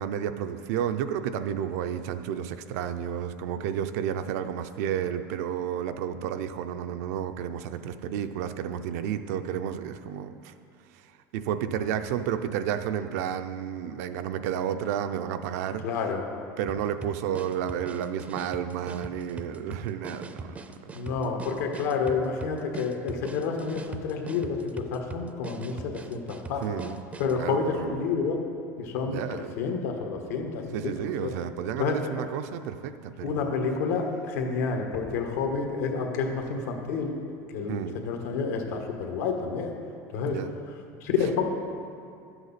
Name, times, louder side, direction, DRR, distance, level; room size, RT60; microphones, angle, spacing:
voice 1, 0.0-10.5 10.9-11.1 11.3-15.8 16.6-20.9 26.6-27.0 27.4-28.0 29.1-29.6 30.7-33.7 37.7-38.0 40.3-40.5, right 9 dB, 80° right, 9 dB, 0.5 m, -31 dB
voice 2, 15.8-16.2 20.9-25.8 26.1-26.8 27.2-28.4 28.8-29.2 29.6-31.3 31.8-32.0 33.2-37.2 37.5-39.7 40.1-40.4 41.0-41.4, left 5 dB, 85° left, 3 dB, 1.4 m, -29 dB
sound 1, 16.7-27.4, right 3 dB, 15° right, 0.4 m, -41 dB
11.5 x 7.9 x 4.1 m, 2.4 s
supercardioid pair, 135°, 9 cm